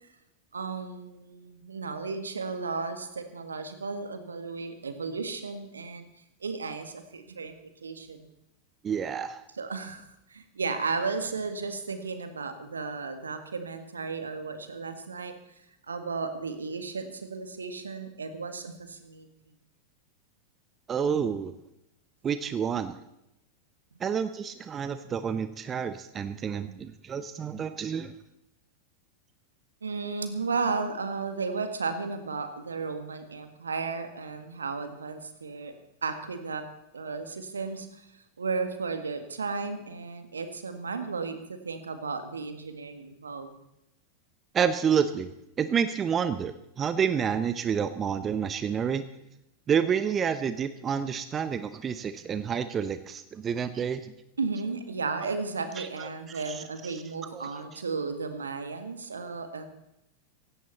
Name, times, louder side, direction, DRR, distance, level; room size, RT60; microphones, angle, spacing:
voice 1, 0.5-6.0 6.4-7.6 7.8-8.3 9.6-15.3 15.9-19.3 26.5-26.8 29.8-35.7 36.0-36.7 36.9-43.5 54.4-59.7, right 4 dB, 75° right, 9 dB, 1.9 m, -34 dB
voice 2, 8.8-9.4 20.9-21.5 22.2-23.0 24.0-28.1 44.5-45.3 45.6-49.1 49.7-54.1 55.8-56.6 56.9-57.0 57.3-57.5, right 7 dB, 25° right, 12 dB, 0.9 m, -29 dB
17.0 x 17.0 x 4.2 m, 0.85 s
figure-of-eight pair, 90°, 0 cm